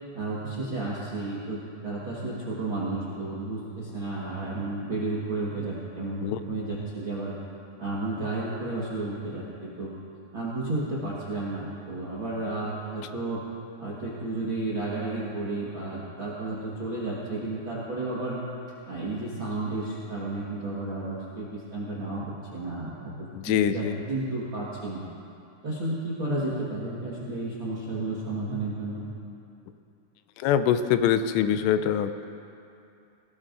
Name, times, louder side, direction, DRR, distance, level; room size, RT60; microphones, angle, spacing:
voice 1, 0.1-7.3 7.8-9.9 10.3-13.4 13.8-18.4 18.9-25.0 25.6-29.1, right 2 dB, 60° right, -7 dB, 1.2 m, -32 dB
voice 2, 23.4-24.0 30.4-32.3, left 9 dB, 85° left, 10 dB, 2.8 m, -24 dB
18.5 x 18.5 x 2.6 m, 2.6 s
omnidirectional pair, 4.9 m